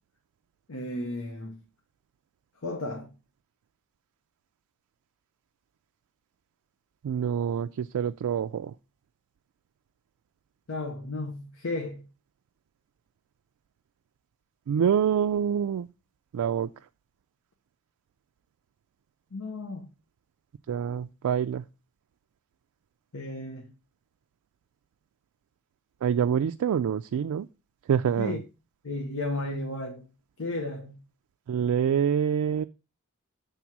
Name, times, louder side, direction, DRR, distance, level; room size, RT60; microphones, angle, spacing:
voice 1, 0.7-1.6 2.6-3.1 10.7-12.0 19.3-19.9 23.1-23.7 28.2-28.4 28.8-30.1 30.4-31.0, left 2 dB, 80° left, 1.0 m, -34 dB
voice 2, 7.0-8.7 14.7-15.9 16.3-16.7 20.7-21.6 26.0-27.5 27.9-28.4 31.5-32.6, right 8 dB, 85° right, 0.3 m, -26 dB
7.3 x 3.5 x 5.9 m
head